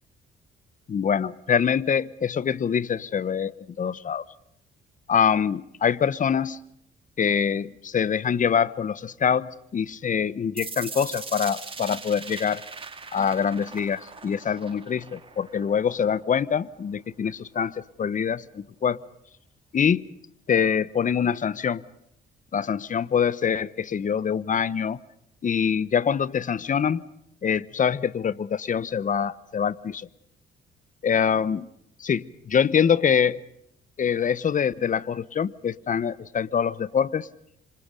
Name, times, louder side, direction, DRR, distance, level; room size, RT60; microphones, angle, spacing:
voice 1, 0.9-4.2 5.1-6.6 7.2-12.6 13.1-19.0 19.7-20.1 20.5-21.8 22.5-25.0 25.4-27.0 27.4-30.1 31.0-31.7 32.0-33.4 34.0-37.3, left 7 dB, 40° left, 19 dB, 0.9 m, -24 dB
sound 1, 10.6-16.6, right 4 dB, 25° right, 2.8 m, -40 dB
27.5 x 25.5 x 5.2 m, 0.77 s
cardioid pair, 90°, 20 cm